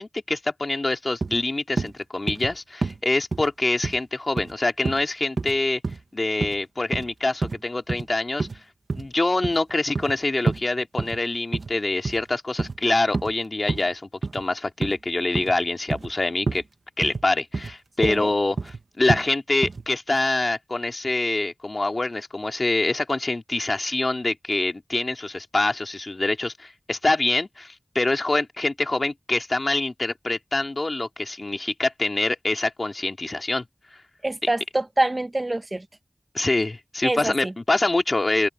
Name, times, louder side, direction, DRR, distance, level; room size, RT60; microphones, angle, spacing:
voice 1, 0.0-5.8 6.1-8.5 8.9-14.0 14.3-16.6 17.0-33.6 36.3-38.5, left 2 dB, 50° left, 2.4 m, -25 dB
sound 1, 1.2-1.4 1.8-1.9 2.3-2.5 2.8-3.0 3.3-3.5 3.8-4.0 4.4-4.5 4.9-5.0 5.4-5.6 5.8-6.0 6.4-6.6 6.9-7.1 7.4-7.6 7.9-8.0 8.4-8.6 8.9-9.1 9.4-10.2 10.5-10.6 11.0-11.2 11.5-11.7 12.0-12.3 12.6-12.8 13.1-13.3 13.7-13.8 14.2-14.4 14.8-14.9 15.4-15.6 15.9-16.1 16.5-16.6 17.0-17.3 17.5-17.7 18.0-18.2 18.6-18.8 19.1-19.2 19.6-19.8, right 3 dB, 90° right, 1.0 m, -28 dB
voice 2, 34.2-35.8 37.0-37.5, right 1 dB, 35° right, 1.2 m, -25 dB
wide cardioid pair, 65°, 0 cm